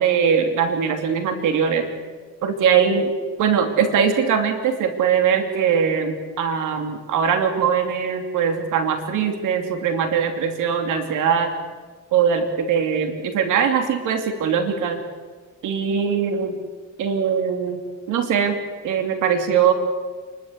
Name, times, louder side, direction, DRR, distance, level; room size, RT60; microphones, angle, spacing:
voice 1, 0.0-1.9 2.4-3.1 3.4-11.5 12.1-15.0 15.6-16.6 17.0-17.8 18.1-18.6 18.8-19.7, right 7 dB, 90° right, 6 dB, 2.9 m, -21 dB
28.0 x 13.0 x 8.1 m, 1.5 s
cardioid pair, 90°, 30 cm